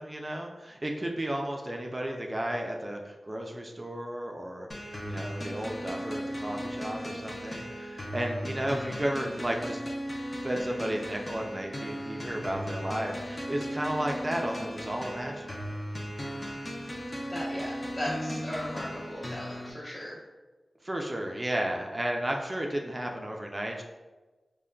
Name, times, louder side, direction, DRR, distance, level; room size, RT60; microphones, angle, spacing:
voice 1, 0.0-9.8 10.4-15.7 20.8-23.8, right 1 dB, 30° right, 1 dB, 0.3 m, -33 dB
sound 1, 4.7-19.7, equal, 30° left, 0.5 m, -37 dB
voice 2, 17.3-20.2, left 1 dB, 50° left, -7 dB, 1.0 m, -37 dB
3.6 x 2.1 x 2.2 m, 1.2 s
cardioid pair, 45°, 0 cm